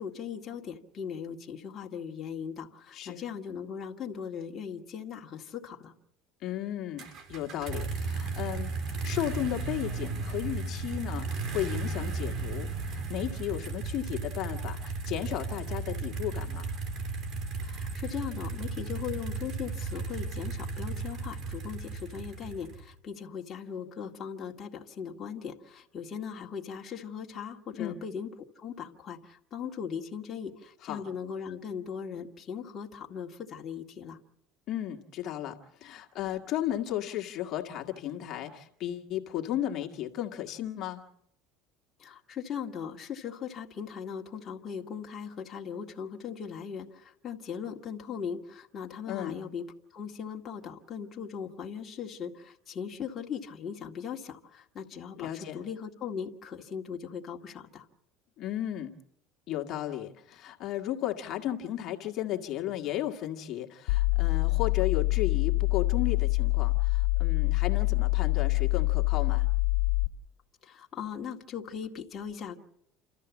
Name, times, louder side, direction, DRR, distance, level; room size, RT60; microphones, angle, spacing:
voice 1, 0.0-5.9 17.6-28.3 28.6-34.2 42.0-49.6 49.9-57.9 70.6-72.6, left 7 dB, 35° left, 0 dB, 1.9 m, -39 dB
voice 2, 6.4-16.7 27.8-28.0 30.8-31.0 34.7-41.0 49.1-49.4 55.2-55.6 58.4-58.9 59.5-69.5, left 12 dB, 50° left, 2 dB, 1.9 m, -34 dB
sound 1, 7.0-22.9, right 4 dB, 55° right, 3.2 m, -35 dB
sound 2, 63.9-70.1, left 25 dB, 85° left, 1.9 m, -26 dB
29.5 x 13.0 x 7.2 m, 0.77 s
supercardioid pair, 110°, 0 cm